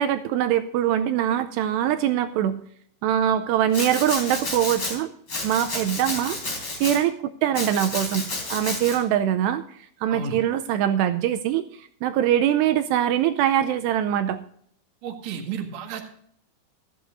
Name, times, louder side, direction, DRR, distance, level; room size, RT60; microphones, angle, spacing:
voice 1, 0.0-2.6 3.0-5.1 5.4-6.4 6.8-14.4, right 10 dB, 80° right, 9 dB, 2.6 m, -23 dB
Domestic sounds home sounds, 3.7-4.9 5.3-7.0 7.5-9.0, left 2 dB, 25° left, 4.0 m, -31 dB
voice 2, 15.0-16.0, right 6 dB, 50° right, 2 dB, 1.6 m, -32 dB
16.0 x 13.5 x 2.6 m, 0.64 s
omnidirectional pair, 5.1 m